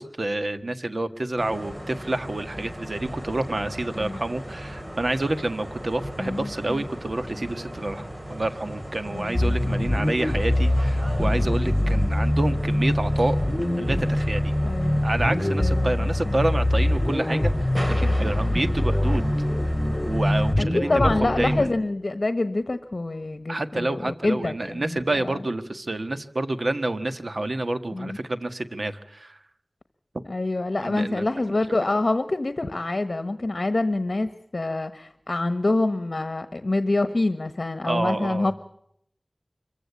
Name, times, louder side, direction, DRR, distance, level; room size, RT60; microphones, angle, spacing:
voice 1, 0.0-13.4 13.8-14.5 15.0-17.7 18.0-19.2 20.0-21.7 23.5-29.4 30.1-30.2 30.8-31.3 37.8-38.5, right 2 dB, 65° right, 10 dB, 1.6 m, -28 dB
sound 1, 1.4-20.5, equal, 25° right, 3.4 m, -37 dB
voice 2, 6.2-6.8 9.1-9.9 14.6-15.0 15.6-16.4 20.6-25.4 27.9-28.2 30.3-38.5, left 2 dB, 65° left, 11 dB, 1.2 m, -26 dB
sound 2, 9.3-21.6, left 1 dB, 20° left, 5.1 m, -23 dB
25.5 x 15.5 x 8.4 m, 0.73 s
wide cardioid pair, 50°, 0 cm